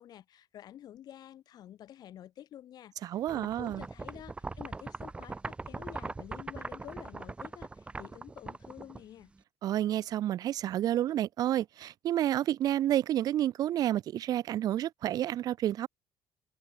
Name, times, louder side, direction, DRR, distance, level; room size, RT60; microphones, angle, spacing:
voice 1, 0.0-9.3, left 11 dB, 50° left, 2.0 m, -49 dB
voice 2, 3.0-3.8 9.6-15.9, right 12 dB, 45° right, 0.5 m, -30 dB
sound 1, 3.3-9.4, right 3 dB, 10° right, 1.3 m, -41 dB
open air
cardioid pair, 160°, 9 cm